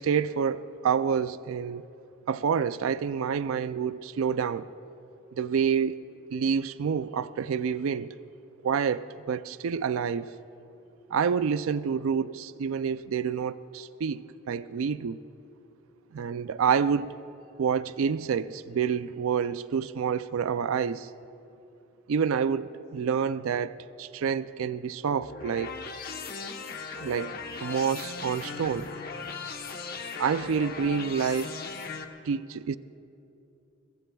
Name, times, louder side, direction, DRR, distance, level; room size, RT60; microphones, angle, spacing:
voice 1, 0.0-1.8 2.3-4.7 5.3-6.0 6.3-8.2 8.6-10.3 11.1-15.2 16.1-17.2 17.6-21.1 22.1-25.7 27.0-27.4 27.6-28.9 30.2-31.6 32.2-32.8, right 6 dB, 80° right, 0.4 m, -28 dB
sound 1, 25.2-32.0, left 4 dB, 45° left, 1.0 m, -38 dB
23.0 x 22.0 x 2.3 m
head